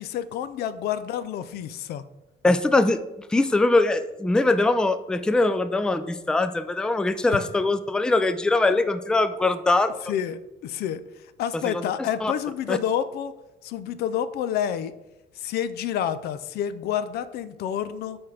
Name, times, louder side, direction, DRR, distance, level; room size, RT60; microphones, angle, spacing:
voice 1, 0.0-2.0 10.1-11.0 11.4-13.3 13.6-14.9 15.4-18.2, left 9 dB, 70° left, 14 dB, 0.4 m, -29 dB
voice 2, 2.4-3.0 3.3-9.9 11.7-11.9 12.2-12.3 12.7-12.8, left 2 dB, 5° left, 11 dB, 0.3 m, -22 dB
5.8 x 4.3 x 4.8 m, 0.97 s
cardioid pair, 110°, 17 cm